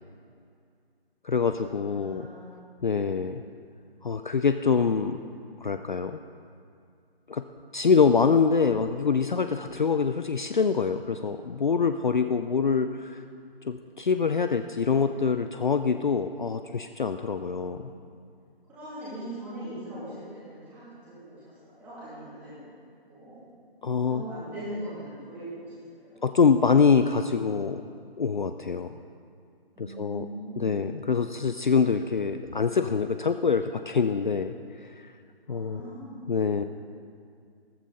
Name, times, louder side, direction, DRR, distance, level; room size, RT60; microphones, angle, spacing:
voice 1, 1.2-2.3 2.8-3.4 4.0-5.2 5.6-6.1 7.3-7.4 7.7-13.2 13.6-17.9 23.8-24.2 26.2-27.8 28.2-29.0 29.8-30.3 30.6-35.1 35.5-35.9 36.3-36.6, left 5 dB, 50° left, 9 dB, 0.5 m, -25 dB
voice 2, 1.9-2.5 17.5-18.1 18.7-22.6 23.1-23.4 24.1-26.2 29.7-31.0 35.5-36.3, right 1 dB, 5° right, -12 dB, 2.7 m, -41 dB
14.0 x 14.0 x 4.1 m, 2.3 s
hypercardioid pair, 175°, 31 cm